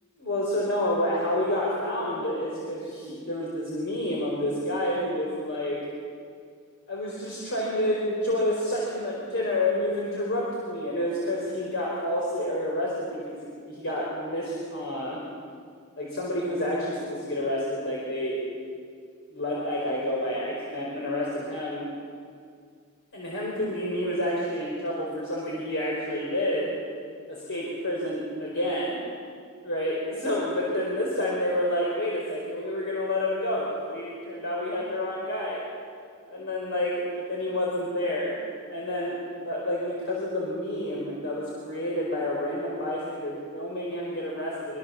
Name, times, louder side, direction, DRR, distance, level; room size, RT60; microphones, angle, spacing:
voice 1, 0.2-5.8 6.9-15.2 15.9-18.4 19.3-21.8 23.1-26.7 27.3-29.0 29.6-35.6 36.2-38.3 38.7-44.8, left 1 dB, 60° left, -4 dB, 4.7 m, -29 dB
24.5 x 23.5 x 7.1 m, 2.2 s
head